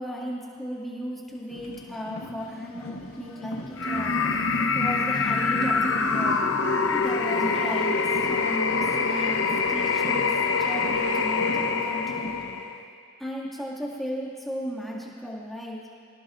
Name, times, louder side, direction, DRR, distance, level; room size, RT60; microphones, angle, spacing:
voice 1, 0.0-4.2 4.7-6.4 6.9-8.0 8.3-12.4 13.2-15.8, equal, ahead, -6 dB, 2.2 m, -35 dB
Car, 1.5-12.6, left 1 dB, 85° left, 1.3 m, -40 dB
sound 1, 3.8-12.8, left 4 dB, 70° left, 0.9 m, -25 dB
26.0 x 17.5 x 2.6 m, 2.3 s
head